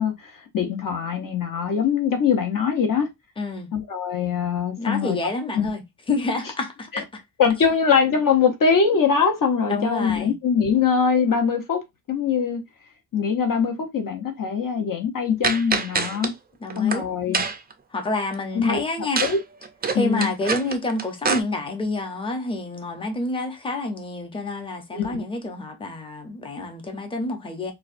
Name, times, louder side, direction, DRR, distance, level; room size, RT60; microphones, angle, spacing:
voice 1, 0.0-3.1 3.7-5.2 5.5-5.7 6.9-7.0 7.4-11.8 12.1-12.6 13.1-16.3 16.8-17.4 18.5-18.8 19.2-19.4 19.9-20.3 24.9-25.2, left 6 dB, 50° left, 0.8 m, -22 dB
voice 2, 3.4-3.7 4.8-7.0 9.7-10.3 16.6-17.0 17.9-19.2 19.9-27.7, left 2 dB, 15° left, 0.6 m, -28 dB
sound 1, 15.4-16.3 16.7-17.0 17.3-17.7 19.1-19.4 19.6-21.4, right 4 dB, 25° right, 0.3 m, -25 dB
4.6 x 2.2 x 2.5 m
wide cardioid pair, 165°, 41 cm